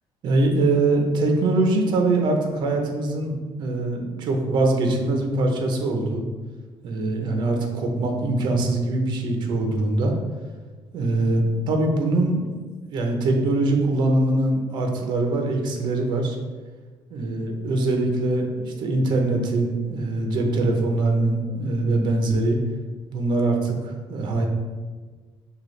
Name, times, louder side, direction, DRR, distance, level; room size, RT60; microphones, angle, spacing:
voice 1, 0.2-3.3 3.6-6.2 6.8-10.1 10.9-12.6 12.9-16.4 17.1-22.6 23.1-23.8 24.1-24.5, right 2 dB, 55° right, 3 dB, 0.8 m, -22 dB
5.9 x 2.8 x 3.2 m, 1.4 s
cardioid pair, 150°, 9 cm